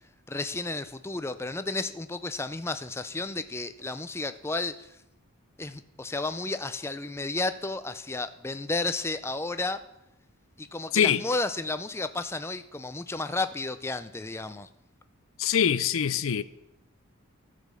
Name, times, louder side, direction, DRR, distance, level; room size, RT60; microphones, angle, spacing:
voice 1, 0.3-5.0 5.6-9.8 10.6-14.7, left 3 dB, 10° left, 0.4 m, -32 dB
voice 2, 15.4-16.4, left 8 dB, 70° left, 0.5 m, -23 dB
14.5 x 5.1 x 6.8 m
head